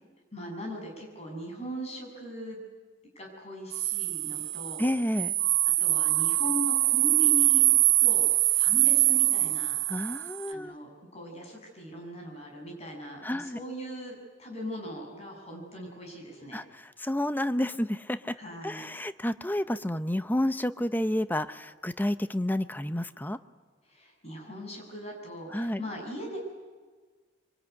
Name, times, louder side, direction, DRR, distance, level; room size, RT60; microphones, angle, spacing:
voice 1, 0.3-2.6 3.2-4.9 5.8-7.7 8.0-8.3 8.5-9.8 10.5-16.6 18.3-18.9 23.9-26.4, equal, 35° left, 1 dB, 7.6 m, -39 dB
sound 1, 3.7-10.5, right 16 dB, 90° right, 1.2 m, -24 dB
voice 2, 4.8-5.3 9.9-10.7 13.2-13.6 16.5-18.3 18.6-23.4 25.5-25.8, left 1 dB, 10° left, 12 dB, 0.8 m, -30 dB
25.0 x 24.5 x 9.6 m, 1.4 s
head